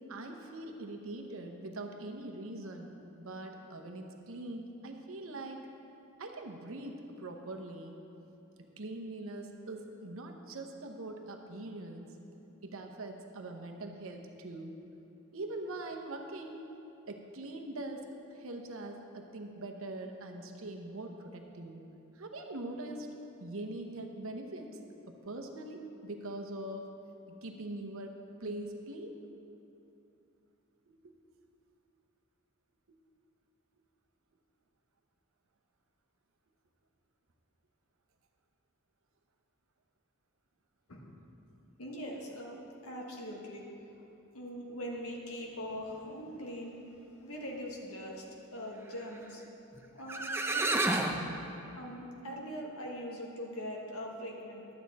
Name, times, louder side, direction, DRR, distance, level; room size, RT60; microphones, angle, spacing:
voice 1, 0.1-5.6 6.2-8.0 8.8-12.1 12.6-14.7 15.3-16.7 17.0-18.0 18.4-21.8 22.2-23.1 23.4-24.7 25.1-26.8 27.4-28.1 28.4-29.2 30.9-31.0, right 2 dB, 65° right, 4 dB, 0.9 m, -42 dB
voice 2, 41.8-43.6 44.3-46.8 47.2-48.2 48.5-49.4 49.9-51.0 51.8-54.7, equal, 85° left, -1 dB, 1.5 m, -42 dB
sound 1, 49.8-49.9 50.1-51.2, right 2 dB, 10° right, 0.5 m, -29 dB
11.5 x 8.6 x 4.1 m, 2.8 s
head